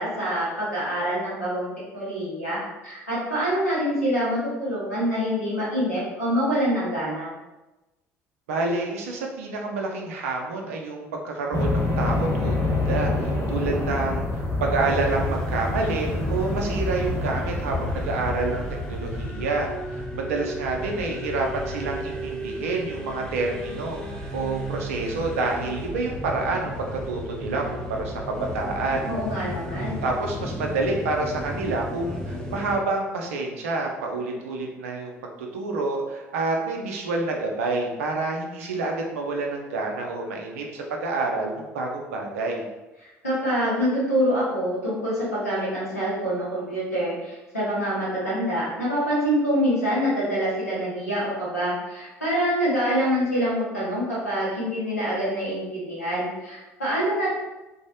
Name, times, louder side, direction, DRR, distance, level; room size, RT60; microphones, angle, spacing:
voice 1, 0.0-7.3 29.0-30.0 43.0-57.3, equal, 85° left, -8 dB, 1.0 m, -26 dB
voice 2, 8.5-18.6 18.9-24.0 24.3-29.1 30.0-42.7, right 3 dB, 70° right, 1 dB, 0.4 m, -28 dB
sound 1, 11.5-19.3, left 2 dB, 35° left, 1.0 m, -27 dB
sound 2, 14.8-32.8, equal, 10° left, 0.6 m, -34 dB
2.6 x 2.0 x 2.7 m, 1.0 s
figure-of-eight pair, 55°, 8 cm